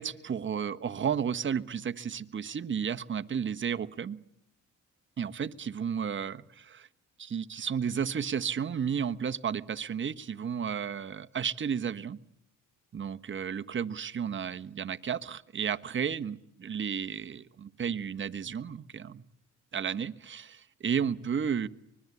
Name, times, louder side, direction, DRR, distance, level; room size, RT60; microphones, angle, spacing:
voice 1, 0.0-4.2 5.2-6.9 7.2-12.2 12.9-19.2 19.7-21.7, right 7 dB, 40° right, 10 dB, 1.3 m, -33 dB
25.0 x 21.0 x 9.7 m, 0.79 s
cardioid pair, 90°, 30 cm